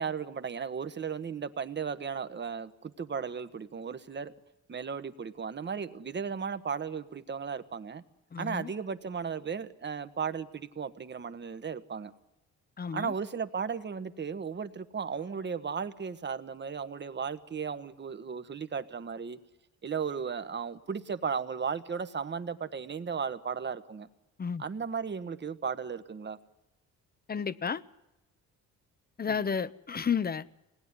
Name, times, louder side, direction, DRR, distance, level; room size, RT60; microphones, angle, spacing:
voice 1, 0.0-4.3 4.7-8.0 8.4-12.1 12.9-19.4 19.8-24.1 24.6-26.4 29.3-29.5, right 6 dB, 35° right, 1.5 m, -35 dB
voice 2, 8.3-8.7 12.8-13.1 24.4-24.6 27.3-27.8 29.2-30.4, left 6 dB, 30° left, 0.9 m, -31 dB
26.5 x 19.5 x 9.8 m
cardioid pair, 90°, 30 cm